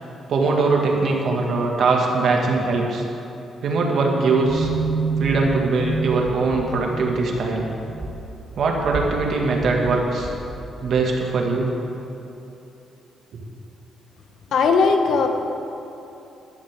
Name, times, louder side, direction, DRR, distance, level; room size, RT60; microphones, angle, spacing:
voice 1, 0.3-3.0 3.6-4.7 5.2-7.7 8.6-10.3 10.8-11.7, right 3 dB, 65° right, 0 dB, 2.1 m, -21 dB
sound 1, 4.5-11.0, right 4 dB, 25° right, 2.8 m, -29 dB
voice 2, 14.5-15.3, left 4 dB, 75° left, 4 dB, 1.3 m, -18 dB
15.0 x 12.0 x 3.8 m, 2.9 s
cardioid pair, 95°, 0 cm